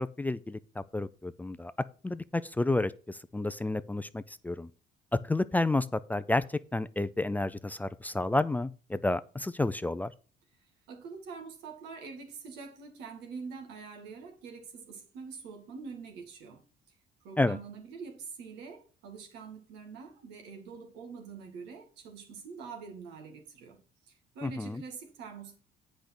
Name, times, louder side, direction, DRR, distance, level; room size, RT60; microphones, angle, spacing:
voice 1, 0.0-1.7 2.0-4.7 5.1-10.1 17.4-17.6 24.4-24.8, left 2 dB, 10° left, 0.4 m, -30 dB
voice 2, 10.9-16.6 17.2-23.8 24.1-25.6, right 5 dB, 90° right, 2.2 m, -45 dB
8.3 x 5.2 x 6.0 m
cardioid pair, 110°, 17 cm